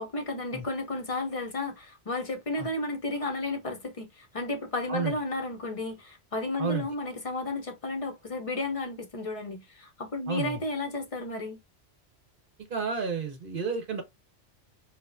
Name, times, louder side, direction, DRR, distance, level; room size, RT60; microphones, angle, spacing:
voice 1, 0.0-11.6, left 2 dB, 40° left, 0.5 m, -33 dB
voice 2, 10.3-10.6 12.7-14.0, right 5 dB, 50° right, 1.2 m, -31 dB
4.9 x 2.1 x 2.4 m
omnidirectional pair, 1.2 m